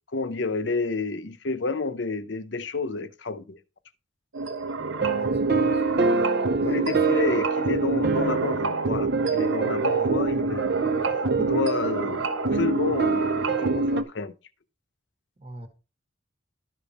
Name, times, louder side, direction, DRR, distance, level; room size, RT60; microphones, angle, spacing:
voice 1, 0.1-3.6 6.6-10.7 11.4-14.3, left 4 dB, 65° left, 0.8 m, -30 dB
sound 1, 4.3-14.0, right 2 dB, 90° right, 1.2 m, -27 dB
sound 2, 4.8-14.0, right 5 dB, 55° right, 0.7 m, -27 dB
voice 2, 5.0-6.0 6.6-7.0 9.8-10.0 15.4-15.7, right 1 dB, 30° right, 1.3 m, -43 dB
13.0 x 5.3 x 4.2 m
head